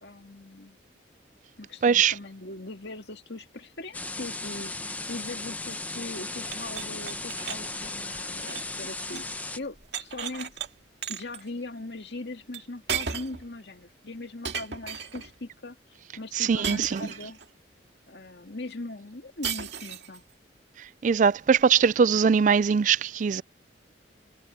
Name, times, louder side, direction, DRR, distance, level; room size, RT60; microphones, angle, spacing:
voice 1, 0.0-0.8 1.6-9.3 9.6-10.5 11.1-15.8 16.2-17.4 18.1-20.2, left 2 dB, 65° left, 2.1 m, -40 dB
voice 2, 1.8-2.1 16.5-17.0 21.0-23.4, right 6 dB, 40° right, 0.3 m, -21 dB
sound 1, 3.9-9.6, left 2 dB, 10° left, 0.9 m, -36 dB
sound 2, 6.4-9.4 9.6-10.7 11.0-11.4 12.5-12.6 12.9-13.5 14.4-15.3 16.6-17.5 19.4-20.2, right 7 dB, 65° right, 2.1 m, -35 dB
head